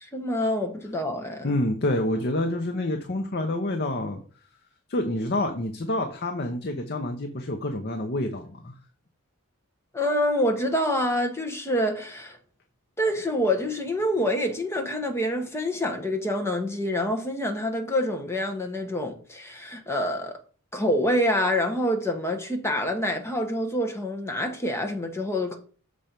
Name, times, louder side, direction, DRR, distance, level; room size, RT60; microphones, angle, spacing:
voice 1, 0.0-1.5 9.9-12.4 13.0-20.4 20.7-25.6, left 1 dB, 10° left, 1.0 m, -26 dB
voice 2, 1.4-4.2 4.9-8.7, left 1 dB, 45° left, 0.8 m, -28 dB
6.9 x 4.3 x 5.2 m
head